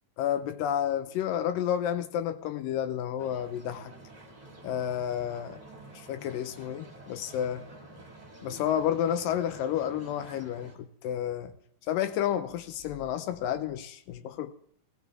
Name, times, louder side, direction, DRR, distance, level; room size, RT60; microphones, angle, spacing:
voice 1, 0.2-3.9 4.6-5.6 5.9-7.6 8.4-11.5 11.9-14.5, left 10 dB, 85° left, 2.4 m, -30 dB
sound 1, 3.2-10.8, right 2 dB, 15° right, 1.6 m, -49 dB
17.0 x 16.0 x 3.6 m
omnidirectional pair, 3.9 m